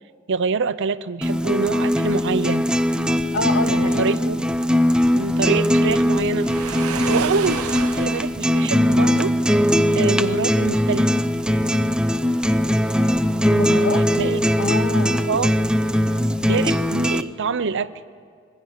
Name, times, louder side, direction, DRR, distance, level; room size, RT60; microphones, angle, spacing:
voice 1, 0.3-2.7 3.7-4.5 5.1-6.5 7.1-9.3 9.9-11.1 13.7-14.4 15.3-15.5 16.5-17.9, right 5 dB, 60° right, 15 dB, 0.7 m, -25 dB
sound 1, 1.2-17.2, equal, 5° right, 0.6 m, -20 dB
voice 2, 3.3-4.2 13.5-14.1 14.6-15.3, left 2 dB, 85° left, 5 dB, 2.1 m, -26 dB
Waves surf, 6.3-8.4, right 6 dB, 85° right, 0.9 m, -31 dB
26.0 x 22.0 x 5.7 m, 2.1 s
head